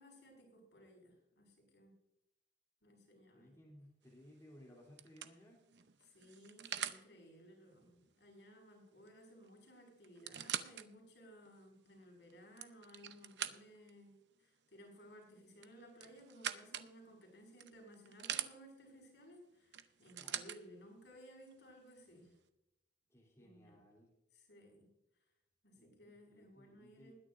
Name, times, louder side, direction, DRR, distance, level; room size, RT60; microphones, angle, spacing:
voice 1, 0.0-1.9 2.8-3.6 6.0-22.4 23.4-23.8 24.3-24.9 25.6-27.1, equal, 75° left, 0 dB, 5.6 m, -59 dB
voice 2, 3.3-5.6 7.6-7.8 20.2-20.4 23.1-24.1 25.8-27.1, equal, 15° left, -3 dB, 3.2 m, -61 dB
sound 1, 4.1-4.4 5.0-7.0 9.1-9.2 9.4-9.5 10.0-10.9 11.5-11.6 12.3-13.9 15.6-16.9 17.6-18.5 19.7-20.6 21.5-21.6, right 10 dB, 80° right, 0.7 m, -43 dB
21.0 x 10.0 x 2.6 m, 0.85 s
head